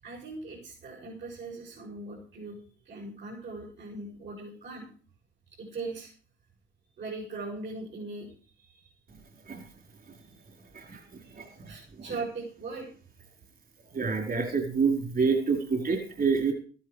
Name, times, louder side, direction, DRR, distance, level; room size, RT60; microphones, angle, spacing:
voice 1, 0.0-2.6 2.8-4.9 5.6-6.1 7.0-8.9 10.2-10.3 10.7-10.9 11.2-12.9 15.8-15.9, right 3 dB, 65° right, -5 dB, 7.1 m, -40 dB
voice 2, 13.9-16.5, right 5 dB, 45° right, 2 dB, 4.8 m, -27 dB
14.5 x 13.0 x 5.0 m, 0.40 s
cardioid pair, 90°, 20 cm